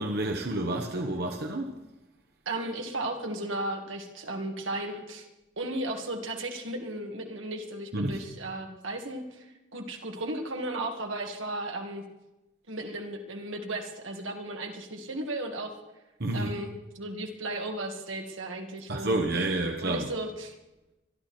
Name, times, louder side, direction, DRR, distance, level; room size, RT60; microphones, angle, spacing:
voice 1, 0.0-1.8 7.9-8.2 16.2-16.5 18.9-20.1, right 1 dB, 55° right, 1.1 m, -29 dB
voice 2, 2.5-5.3 5.6-12.0 12.7-15.7 16.3-19.2 19.8-20.5, right 1 dB, 90° right, 2.3 m, -35 dB
25.0 x 11.5 x 4.4 m
head